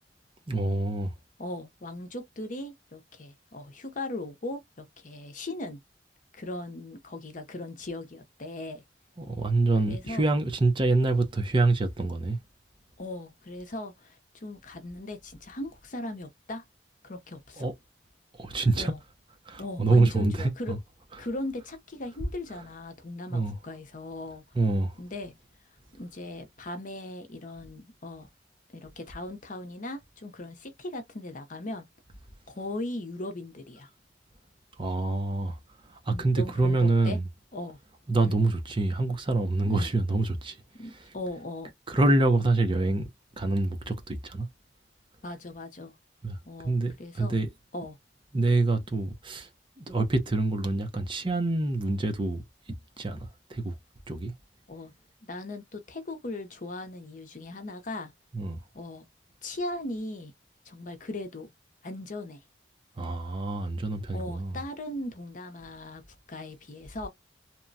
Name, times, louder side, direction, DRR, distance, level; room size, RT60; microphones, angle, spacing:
voice 1, 0.5-1.1 9.2-12.4 17.6-17.7 18.4-18.9 19.5-20.8 23.3-23.6 24.5-25.0 34.8-35.6 35.9-37.2 38.1-41.1 41.9-43.1 43.4-44.5 46.2-47.5 48.3-49.5 49.8-53.7 54.1-54.3 58.3-58.6 63.0-64.6, right 2 dB, 30° right, 0.7 m, -26 dB
voice 2, 1.4-5.8 6.3-8.8 9.9-10.3 13.0-16.6 17.0-17.7 18.7-19.0 19.6-20.8 21.2-24.4 25.0-25.3 26.0-28.3 28.7-31.8 32.6-33.9 36.1-37.2 37.5-37.8 38.2-38.4 39.7-39.9 40.7-41.7 45.2-46.0 46.4-47.4 47.7-48.0 54.7-54.9 55.2-58.1 58.7-59.0 59.4-60.3 60.7-61.5 61.8-62.4 64.1-66.0 66.3-67.1, left 2 dB, 45° left, 0.7 m, -38 dB
2.9 x 2.2 x 2.6 m
head